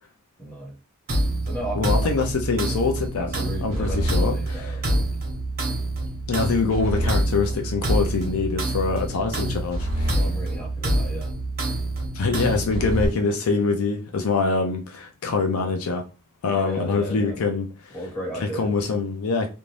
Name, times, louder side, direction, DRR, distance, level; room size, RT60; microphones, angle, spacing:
voice 1, 0.4-0.7 1.5-2.3 2.6-2.8 3.2-5.1 7.0-7.2 10.1-11.3 15.5-15.7 16.4-17.4 17.9-18.7, equal, 10° left, 1.4 m, -35 dB
sound 1, 1.1-13.1, right 1 dB, 45° right, 0.9 m, -26 dB
voice 2, 1.8-3.3 3.6-4.8 6.3-10.2 12.1-16.0 16.4-17.9 18.4-19.5, left 4 dB, 70° left, 0.4 m, -24 dB
2.6 x 2.2 x 3.2 m
head